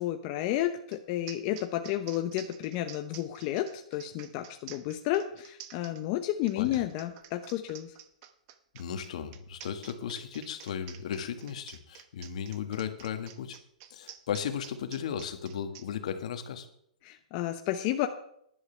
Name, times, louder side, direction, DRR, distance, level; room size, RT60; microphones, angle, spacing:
voice 1, 0.0-7.9 17.0-18.1, left 13 dB, 40° left, 6 dB, 0.8 m, -31 dB
sound 1, 0.9-1.0 1.3-15.9, right 11 dB, 40° right, 1.1 m, -50 dB
voice 2, 8.7-13.6 13.9-16.7, left 8 dB, 65° left, 7 dB, 1.7 m, -36 dB
18.0 x 11.0 x 3.4 m, 0.71 s
hypercardioid pair, 145°, 4 cm